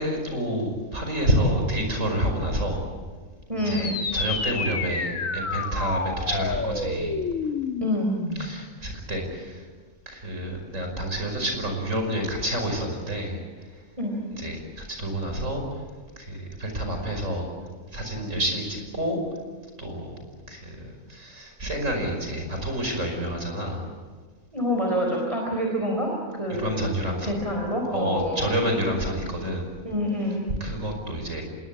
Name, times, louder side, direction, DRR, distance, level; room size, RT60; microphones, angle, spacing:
voice 1, 0.0-2.9 3.6-7.2 8.4-9.6 10.1-13.4 14.4-15.6 16.2-17.5 17.9-19.2 19.8-20.2 20.5-23.9 26.5-27.3 27.9-29.6 30.6-31.4, equal, 65° right, 4 dB, 5.9 m, -28 dB
voice 2, 3.5-4.0 7.8-8.2 14.0-14.2 24.5-26.9 27.2-28.5 29.8-30.4, equal, 25° right, 0 dB, 4.2 m, -27 dB
sound 1, 3.6-8.6, left 4 dB, 70° left, 2.2 m, -29 dB
26.0 x 21.5 x 8.6 m, 1.5 s
omnidirectional pair, 1.4 m